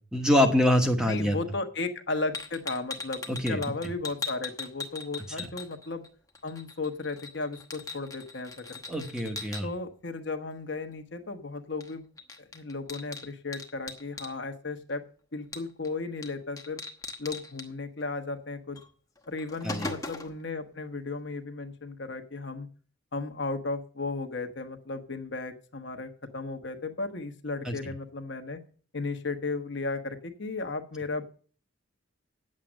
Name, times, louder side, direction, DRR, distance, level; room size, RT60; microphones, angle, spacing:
voice 1, 0.1-1.4 3.3-3.6 5.4-5.5 8.9-9.7 19.6-19.9 27.6-27.8, left 1 dB, 5° right, 4 dB, 1.2 m, -25 dB
voice 2, 1.0-6.0 6.4-8.8 9.6-12.0 12.4-15.0 15.3-16.8 17.2-18.8 19.3-22.7 23.1-28.6 28.9-31.2, left 3 dB, 60° left, 7 dB, 1.1 m, -35 dB
sound 1, 2.3-6.1 6.4-9.6 11.8-11.9 12.2-14.3 15.5-15.9 16.2-16.3 16.6-17.7 18.8-18.9 19.2-20.4, left 3 dB, 15° left, 1.0 m, -39 dB
9.9 x 7.5 x 6.3 m, 0.41 s
head